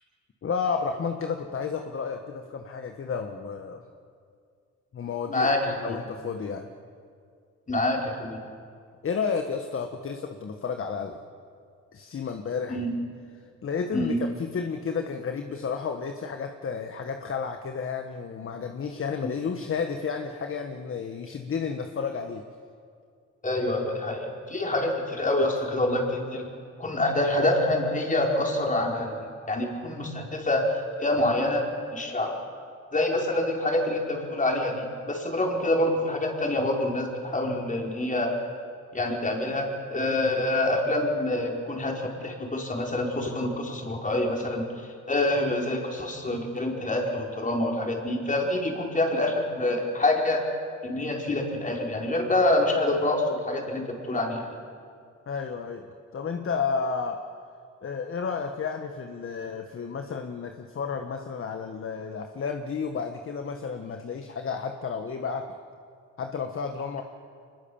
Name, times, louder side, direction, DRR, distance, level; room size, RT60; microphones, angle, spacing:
voice 1, 0.4-3.8 4.9-6.7 9.0-11.2 11.9-12.8 13.6-22.4 55.3-57.2 57.8-65.5 66.2-67.0, left 5 dB, 45° left, 5 dB, 1.5 m, -32 dB
voice 2, 5.3-6.0 7.7-8.4 12.7-12.9 13.9-14.2 23.4-26.5 26.8-30.7 31.0-31.7 31.9-32.4 32.9-38.3 38.9-50.4 50.8-54.5, left 1 dB, 25° left, 0 dB, 4.8 m, -26 dB
24.5 x 21.0 x 7.2 m, 2.2 s
cardioid pair, 90°, 30 cm